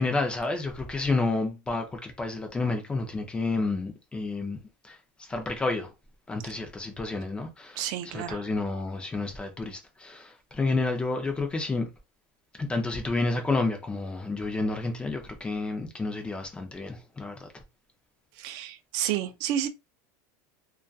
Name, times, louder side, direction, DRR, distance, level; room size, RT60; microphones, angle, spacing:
voice 1, 0.0-5.9 6.3-7.8 8.1-11.9 12.6-17.5, left 3 dB, 10° left, 0.4 m, -30 dB
voice 2, 7.8-8.4 18.3-19.7, right 11 dB, 50° right, 0.4 m, -30 dB
2.5 x 2.3 x 2.3 m
supercardioid pair, 160°, 10 cm